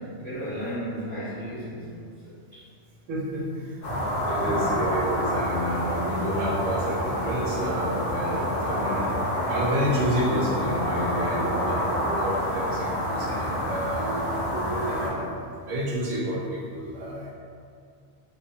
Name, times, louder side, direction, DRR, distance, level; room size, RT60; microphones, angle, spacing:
voice 1, 0.0-2.6 4.2-4.8, equal, 60° right, -14 dB, 1.3 m, -35 dB
voice 2, 3.1-4.0 4.3-9.1 9.5-15.3 15.6-17.3, equal, 80° right, -5 dB, 1.0 m, -30 dB
sound 1, 3.8-15.1, equal, 50° left, 0.5 m, -28 dB
2.6 x 2.2 x 2.6 m, 2.2 s
omnidirectional pair, 1.3 m